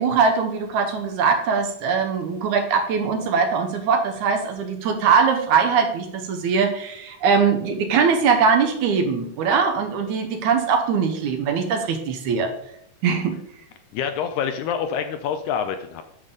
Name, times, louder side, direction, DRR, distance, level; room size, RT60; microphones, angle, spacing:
voice 1, 0.0-12.5 13.0-13.4, right 5 dB, 70° right, 6 dB, 2.1 m, -21 dB
voice 2, 13.9-16.0, left 7 dB, 80° left, 7 dB, 1.8 m, -26 dB
9.7 x 6.8 x 3.6 m, 0.72 s
omnidirectional pair, 3.8 m